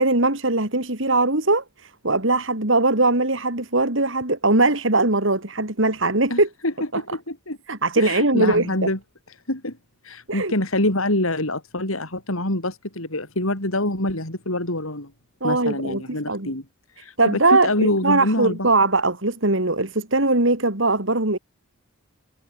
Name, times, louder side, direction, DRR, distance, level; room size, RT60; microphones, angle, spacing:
voice 1, 0.0-6.5 6.9-7.0 7.7-8.7 10.3-10.5 15.4-16.5 17.2-21.4, right 2 dB, 65° right, 3.5 m, -20 dB
voice 2, 6.3-7.6 8.0-9.0 9.5-9.8 10.0-15.1 15.4-16.6 17.0-18.7, left 1 dB, 80° left, 6.2 m, -25 dB
head